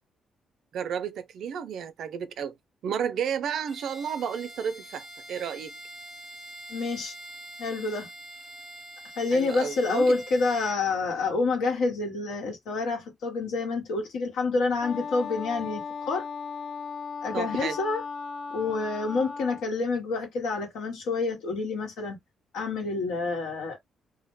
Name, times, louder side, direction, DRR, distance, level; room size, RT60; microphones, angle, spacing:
voice 1, 0.7-2.5 2.8-5.8 9.3-10.2 17.3-17.8, right 7 dB, 70° right, 0.3 m, -32 dB
Bowed string instrument, 3.7-10.8, right 1 dB, 5° left, 0.9 m, -45 dB
voice 2, 6.7-7.1 7.6-8.1 9.2-16.3 17.2-18.0 18.5-22.2 22.5-23.8, left 3 dB, 85° left, 1.0 m, -28 dB
Wind instrument woodwind instrument, 14.8-19.7, left 5 dB, 50° left, 0.6 m, -36 dB
2.1 x 2.1 x 3.0 m
cardioid pair, 90°, 0 cm